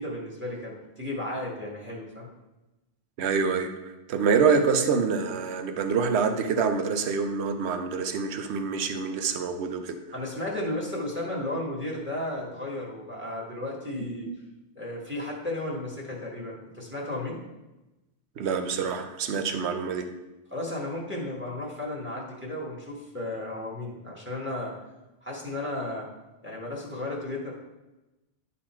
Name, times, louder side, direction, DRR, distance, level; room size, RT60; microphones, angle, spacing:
voice 1, 0.0-2.3 10.1-14.3 14.7-17.4 20.5-24.7 25.2-26.1 26.4-27.5, left 1 dB, 10° right, -2 dB, 1.5 m, -34 dB
voice 2, 3.2-3.7 4.1-10.0 14.3-14.4 18.4-20.1, right 5 dB, 65° right, 7 dB, 1.0 m, -26 dB
10.5 x 4.1 x 4.4 m, 1.0 s
omnidirectional pair, 1.2 m